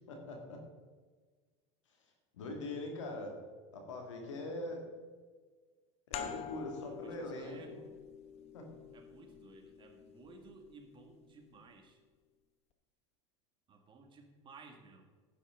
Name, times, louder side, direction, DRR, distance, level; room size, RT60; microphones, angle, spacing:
voice 1, 0.1-0.6 1.9-2.0 2.3-3.4 3.7-4.8 6.1-7.8 8.5-8.7, left 2 dB, 90° left, 2 dB, 2.2 m, -42 dB
sound 1, 6.1-11.4, left 8 dB, 45° left, 1.0 m, -47 dB
voice 2, 6.7-7.8 8.9-12.0 13.7-15.1, right 3 dB, 30° right, 3 dB, 1.9 m, -56 dB
11.0 x 8.8 x 3.8 m, 1.4 s
hypercardioid pair, 100°, 15 cm